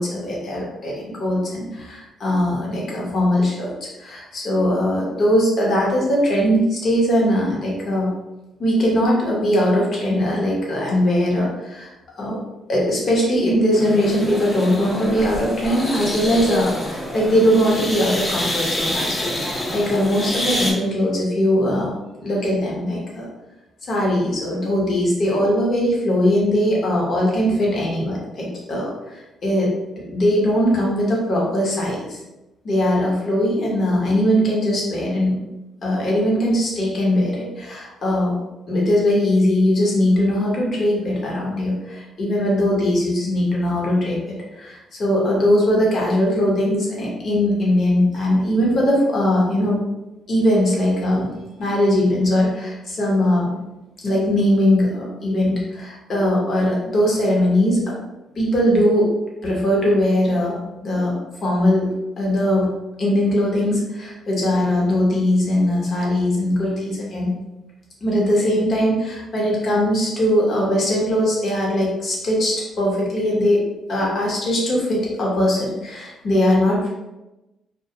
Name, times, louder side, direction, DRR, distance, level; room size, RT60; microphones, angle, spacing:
voice 1, 0.0-3.7 4.0-8.2 8.6-11.9 12.2-12.4 12.7-21.9 22.2-23.3 23.9-32.2 32.6-35.4 35.8-38.4 38.7-44.2 44.5-49.8 50.3-51.3 51.6-53.5 54.0-57.8 58.4-59.1 59.4-61.1 61.4-67.3 68.0-73.6 73.9-76.9, left 1 dB, 50° left, -3 dB, 0.9 m, -20 dB
sound 1, 13.7-20.7, left 1 dB, 20° left, 0.7 m, -27 dB
2.2 x 2.1 x 2.8 m, 1.0 s
cardioid pair, 90°, 0 cm